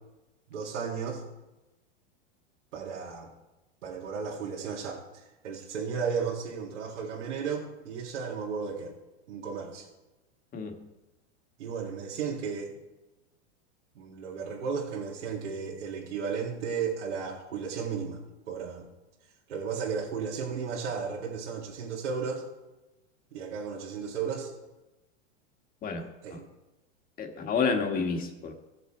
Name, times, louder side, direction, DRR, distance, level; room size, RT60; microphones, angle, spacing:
voice 1, 0.5-1.2 2.7-3.3 3.8-8.9 9.3-9.9 11.6-12.7 14.0-18.2 18.5-18.9 19.5-22.4 23.3-24.5 26.2-26.4, right 6 dB, 85° right, -4 dB, 2.1 m, -34 dB
voice 2, 27.2-28.5, left 5 dB, 25° left, 5 dB, 1.5 m, -29 dB
16.0 x 6.5 x 4.4 m, 1.0 s
supercardioid pair, 140°, 34 cm